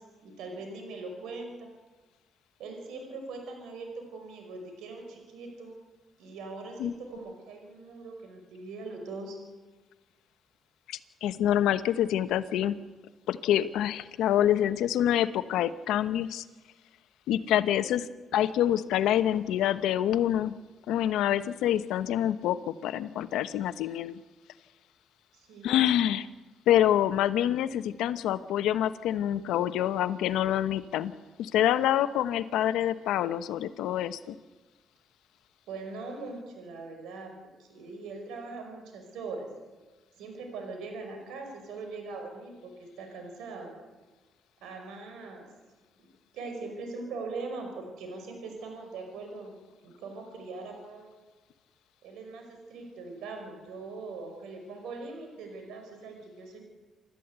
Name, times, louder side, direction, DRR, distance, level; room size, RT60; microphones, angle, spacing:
voice 1, 0.0-1.7 2.6-5.8 6.2-9.4 25.3-26.1 35.7-37.3 37.6-39.5 40.2-43.7 44.6-45.5 46.0-46.1 46.3-49.5 49.8-51.1 52.0-56.6, right 3 dB, 90° right, 3 dB, 5.5 m, -41 dB
voice 2, 10.9-12.8 13.3-16.4 17.3-20.5 20.9-24.2 25.6-26.3 26.7-31.1 31.4-34.4, left 11 dB, 90° left, 12 dB, 1.0 m, -26 dB
28.0 x 13.0 x 8.2 m, 1.3 s
cardioid pair, 90°, 0 cm